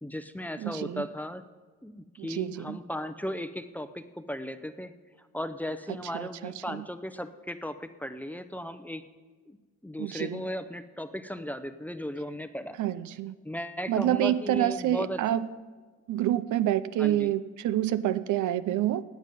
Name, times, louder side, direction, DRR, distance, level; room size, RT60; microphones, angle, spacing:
voice 1, 0.0-1.4 1.8-4.9 5.3-9.0 9.5-9.6 9.8-12.8 13.4-15.2 17.0-17.3, equal, 5° left, 10 dB, 0.7 m, -36 dB
voice 2, 0.6-1.0 2.2-2.8 6.1-6.8 10.0-10.4 12.8-13.4 13.9-15.5 16.1-19.0, right 12 dB, 75° right, 14 dB, 0.6 m, -28 dB
17.0 x 9.3 x 5.3 m, 1.4 s
cardioid pair, 90°, 30 cm